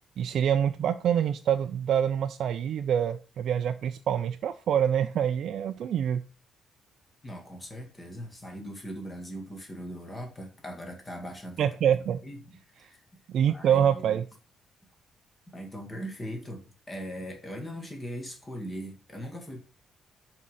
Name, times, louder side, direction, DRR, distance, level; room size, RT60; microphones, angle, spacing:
voice 1, 0.2-6.2 11.6-12.2 13.3-14.2, right 9 dB, 70° right, 8 dB, 0.4 m, -26 dB
voice 2, 7.2-11.7 12.2-13.0 13.4-14.2 15.5-19.6, equal, 25° left, 2 dB, 2.0 m, -40 dB
6.2 x 3.7 x 5.5 m, 0.35 s
cardioid pair, 90°, 0 cm